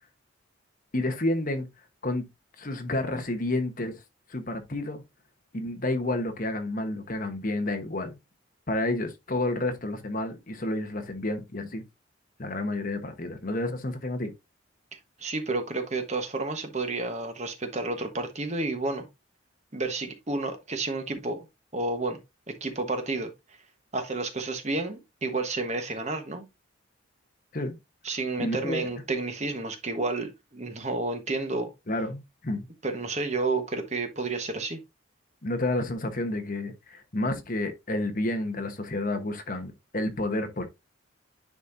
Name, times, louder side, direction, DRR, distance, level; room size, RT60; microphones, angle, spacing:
voice 1, 0.9-1.7 2.0-2.2 2.6-3.9 4.3-5.0 5.5-8.2 8.7-11.8 12.4-14.3 27.5-27.8 28.4-28.9 31.9-32.6 35.4-40.7, left 2 dB, 40° left, 1.1 m, -30 dB
voice 2, 15.2-19.1 19.7-21.5 21.7-22.2 22.5-23.3 23.9-26.4 28.0-31.7 32.8-34.8, right 3 dB, 35° right, 1.2 m, -30 dB
10.0 x 4.3 x 2.6 m
head